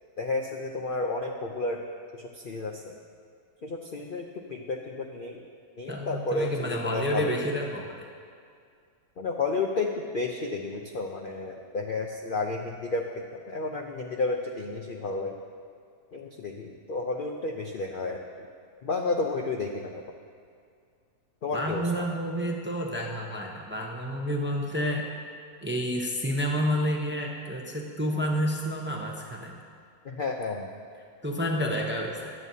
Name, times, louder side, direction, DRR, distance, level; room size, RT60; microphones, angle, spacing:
voice 1, 0.2-1.8 2.1-2.9 3.6-5.4 5.8-7.4 9.2-15.3 16.1-18.2 18.8-20.0 21.4-22.1 30.0-30.7, left 3 dB, 55° left, 1 dB, 0.6 m, -31 dB
voice 2, 5.9-8.1 21.5-25.1 25.6-29.6 31.2-32.3, equal, 10° right, 0 dB, 0.6 m, -29 dB
15.5 x 11.0 x 2.7 m, 2.2 s
omnidirectional pair, 1.6 m